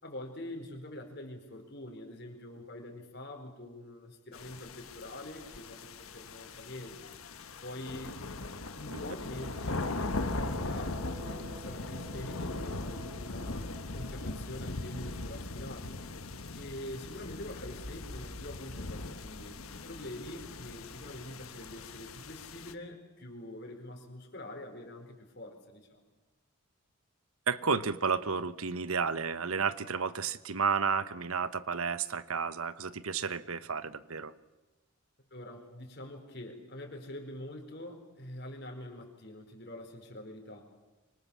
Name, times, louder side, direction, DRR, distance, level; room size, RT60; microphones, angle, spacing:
voice 1, 0.0-7.1 7.6-8.1 8.8-15.9 16.5-26.0 35.3-40.7, left 1 dB, 50° left, 3 dB, 4.6 m, -45 dB
sound 1, 4.3-22.7, left 2 dB, 80° left, 1.4 m, -39 dB
sound 2, 8.6-17.1, right 2 dB, 30° right, 1.2 m, -52 dB
voice 2, 27.5-34.3, right 5 dB, 85° right, 14 dB, 1.1 m, -32 dB
26.0 x 24.5 x 7.2 m, 1.1 s
head